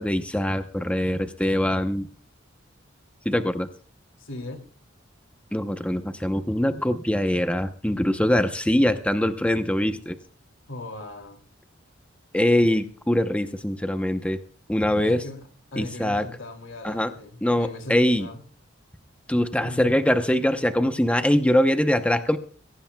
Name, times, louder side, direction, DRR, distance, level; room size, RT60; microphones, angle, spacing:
voice 1, 0.0-2.1 3.2-3.7 5.5-10.2 12.3-14.4 14.7-15.2 15.8-16.3 16.8-17.1 17.4-18.3 19.3-22.4, left 1 dB, 5° left, 8 dB, 0.7 m, -23 dB
voice 2, 4.2-4.7 10.7-11.4 15.0-18.4 19.6-20.0, left 2 dB, 75° left, 6 dB, 2.6 m, -38 dB
22.5 x 16.5 x 2.3 m, 0.39 s
head